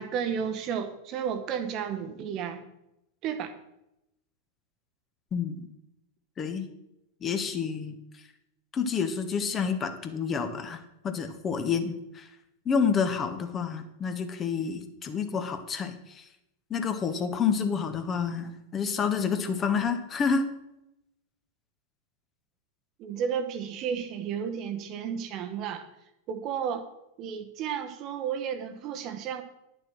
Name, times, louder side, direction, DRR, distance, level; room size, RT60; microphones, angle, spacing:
voice 1, 0.0-2.6 3.2-3.5 23.0-25.8 26.3-26.9 27.2-29.4, right 7 dB, 35° right, 9 dB, 1.1 m, -32 dB
voice 2, 5.3-5.7 6.4-6.7 7.2-8.3 8.7-12.3 12.6-16.3 16.7-20.5, left 6 dB, 25° left, 7 dB, 1.2 m, -29 dB
10.5 x 6.8 x 6.2 m, 0.85 s
figure-of-eight pair, 90°, 0 cm